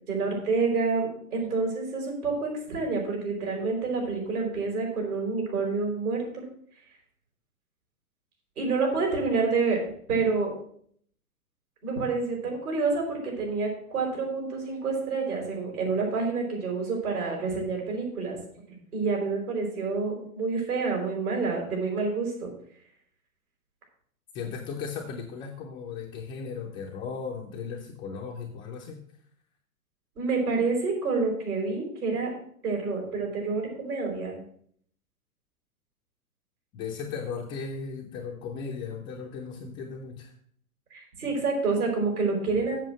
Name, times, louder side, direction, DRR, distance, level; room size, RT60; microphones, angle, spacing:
voice 1, 0.1-6.4 8.6-9.8 10.1-10.5 11.8-18.4 18.9-22.5 30.1-32.3 32.6-34.4 40.9-42.8, right 4 dB, 75° right, 0 dB, 4.9 m, -28 dB
voice 2, 24.3-29.0 36.7-40.3, left 5 dB, 10° left, 0 dB, 0.3 m, -36 dB
7.6 x 7.3 x 6.2 m, 0.62 s
hypercardioid pair, 110°, 44 cm